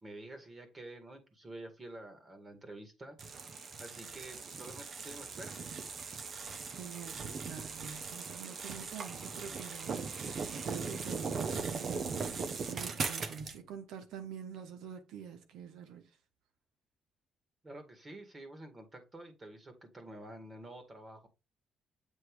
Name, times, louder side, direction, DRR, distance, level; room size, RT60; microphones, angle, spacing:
voice 1, 0.0-5.6 17.6-21.3, right 1 dB, 30° right, 2.1 m, -49 dB
sound 1, 3.2-13.6, right 5 dB, 50° right, 1.1 m, -39 dB
voice 2, 6.7-16.1, right 8 dB, 85° right, 1.1 m, -47 dB
7.9 x 3.1 x 4.9 m
cardioid pair, 90°, 0 cm